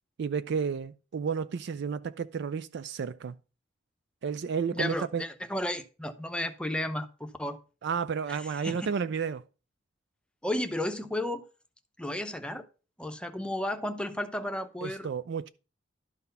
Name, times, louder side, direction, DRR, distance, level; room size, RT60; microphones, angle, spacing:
voice 1, 0.2-3.4 4.2-5.2 7.8-9.4 14.8-15.5, right 6 dB, 60° right, 0.4 m, -32 dB
voice 2, 4.7-7.6 8.3-8.4 8.6-8.9 10.4-11.5 12.0-12.6 13.0-15.1, left 1 dB, 5° left, 0.7 m, -33 dB
12.0 x 4.1 x 5.4 m
head